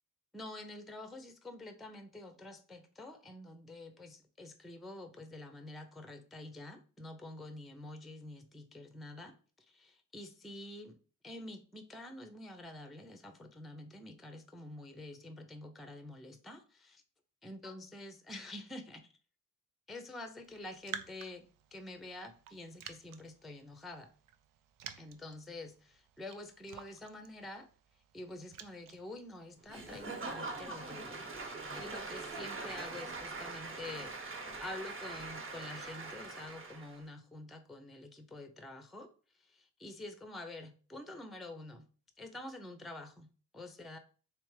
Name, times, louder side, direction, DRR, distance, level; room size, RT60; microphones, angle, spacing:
voice 1, 0.3-11.0 11.2-17.0 17.4-19.1 19.9-21.4 21.7-24.1 25.0-27.7 28.1-31.3 31.7-41.9 42.2-44.0, left 2 dB, ahead, 7 dB, 0.4 m, -48 dB
Raindrop, 20.4-31.1, right 8 dB, 70° right, 0.5 m, -52 dB
Applause / Crowd, 29.7-37.0, right 3 dB, 40° right, 0.9 m, -43 dB
3.3 x 3.2 x 3.1 m, 0.39 s
cardioid pair, 90°, 34 cm